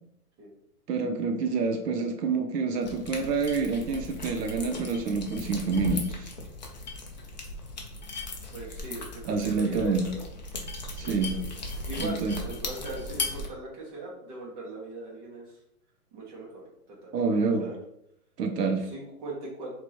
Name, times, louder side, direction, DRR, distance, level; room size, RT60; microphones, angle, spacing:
voice 1, 0.9-6.3 9.3-10.1 11.0-11.4 12.0-12.4 17.1-17.7 18.4-18.9, right 4 dB, 90° right, 4 dB, 0.8 m, -27 dB
sound 1, 2.8-13.5, left 2 dB, 30° left, 0.4 m, -37 dB
voice 2, 8.5-10.2 11.0-11.4 11.9-15.6 16.1-17.8 18.9-19.7, right 2 dB, 30° right, -3 dB, 1.4 m, -40 dB
4.5 x 3.0 x 2.9 m, 0.74 s
hypercardioid pair, 155°, 47 cm